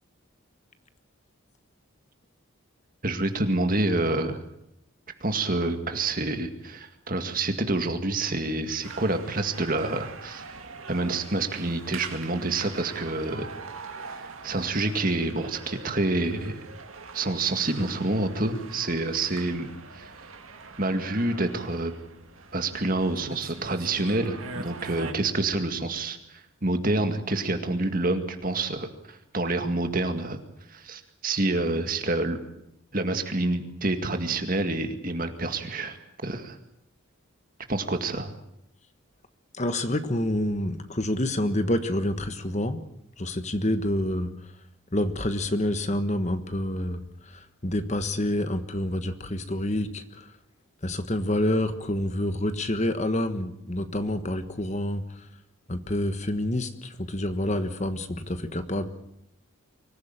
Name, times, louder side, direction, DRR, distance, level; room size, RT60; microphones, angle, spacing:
voice 1, 3.0-4.4 5.2-10.6 10.9-13.5 14.1-16.6 17.1-20.1 20.8-21.9 22.5-30.4 30.7-32.4 32.9-36.0 36.2-36.6 37.7-38.3, right 2 dB, 40° right, 7 dB, 2.1 m, -28 dB
sound 1, 8.8-25.1, right 4 dB, 80° right, 2.7 m, -43 dB
voice 2, 39.5-42.8 43.2-44.3 44.9-47.0 47.6-50.2 50.8-55.0 55.7-58.9, left 1 dB, 35° left, 10 dB, 1.4 m, -27 dB
24.5 x 15.5 x 9.0 m, 0.79 s
head